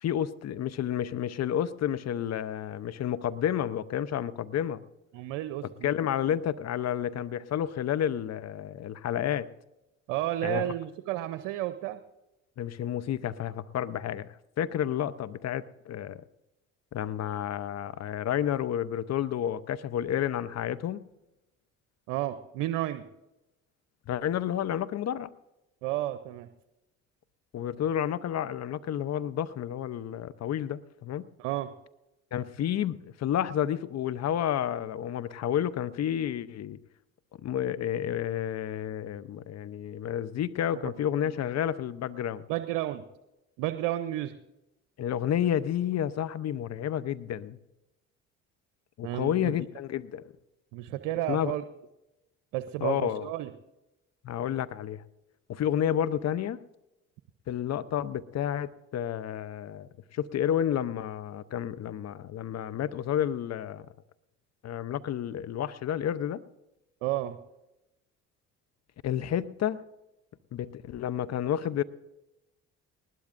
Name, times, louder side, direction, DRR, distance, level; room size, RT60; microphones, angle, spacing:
voice 1, 0.0-4.8 5.8-9.5 10.4-10.7 12.6-16.2 16.9-21.0 24.1-25.3 27.5-31.3 32.3-36.8 37.4-42.4 45.0-47.6 49.0-50.2 51.3-51.6 52.8-53.3 54.2-55.0 55.5-56.6 57.5-63.9 64.6-66.4 69.0-69.8 70.5-71.8, left 10 dB, 45° left, 15 dB, 0.7 m, -30 dB
voice 2, 5.1-5.9 10.1-12.0 22.1-23.1 25.8-26.5 31.4-31.7 40.7-40.9 42.5-43.0 43.6-44.3 49.0-49.5 50.7-51.6 52.5-53.5 67.0-67.4, right 14 dB, 70° right, 11 dB, 0.7 m, -32 dB
20.0 x 19.0 x 2.6 m, 0.96 s
hypercardioid pair, 55°, 36 cm